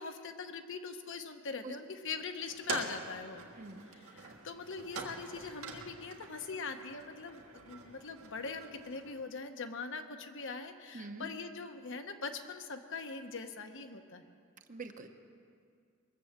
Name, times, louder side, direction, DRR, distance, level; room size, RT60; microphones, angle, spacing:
voice 1, 0.0-3.4 3.9-14.2, left 4 dB, 60° left, 7 dB, 0.9 m, -42 dB
sound 1, 2.5-9.2, right 4 dB, 75° right, 1.7 m, -45 dB
voice 2, 10.9-11.3 14.7-15.1, right 3 dB, 40° right, 6 dB, 0.9 m, -44 dB
21.5 x 7.7 x 7.3 m, 2.2 s
head